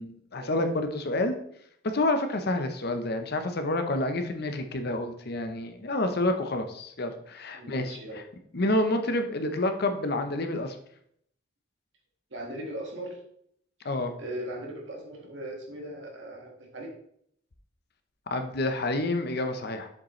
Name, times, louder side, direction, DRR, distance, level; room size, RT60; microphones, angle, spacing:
voice 1, 0.0-1.4 1.8-8.2 8.5-10.8 13.8-14.1 18.3-19.9, left 2 dB, 55° left, 7 dB, 0.7 m, -28 dB
voice 2, 7.5-8.2 12.3-13.2 14.2-16.9, right 1 dB, 70° right, 0 dB, 1.7 m, -39 dB
7.2 x 5.1 x 3.1 m, 0.69 s
head